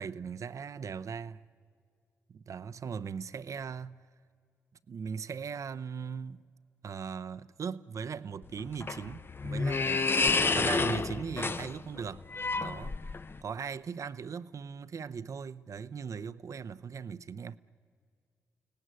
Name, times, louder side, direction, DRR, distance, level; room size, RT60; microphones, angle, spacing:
voice 1, 0.0-1.5 2.3-4.0 4.9-6.4 6.8-10.1 10.5-12.3 12.6-13.0 13.4-17.6, right 6 dB, 55° right, 0.7 m, -39 dB
sound 1, 8.4-13.4, left 4 dB, 35° left, 0.7 m, -30 dB
29.5 x 18.0 x 9.4 m
hypercardioid pair, 40°, 7 cm